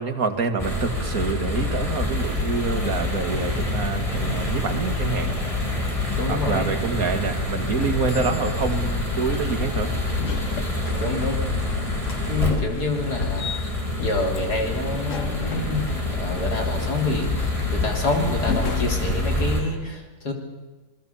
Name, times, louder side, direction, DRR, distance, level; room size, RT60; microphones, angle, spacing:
voice 1, 0.0-5.3 6.3-9.9, right 4 dB, 60° right, 6 dB, 2.4 m, -27 dB
sound 1, 0.6-19.6, left 2 dB, 20° left, 4.8 m, -27 dB
sound 2, 3.3-18.8, left 3 dB, 55° left, 1.5 m, -34 dB
voice 2, 6.2-6.7 8.1-8.3 10.9-11.4 12.3-13.5 14.0-20.3, left 2 dB, 80° left, 3 dB, 4.0 m, -27 dB
27.0 x 20.5 x 7.1 m, 1.2 s
omnidirectional pair, 1.7 m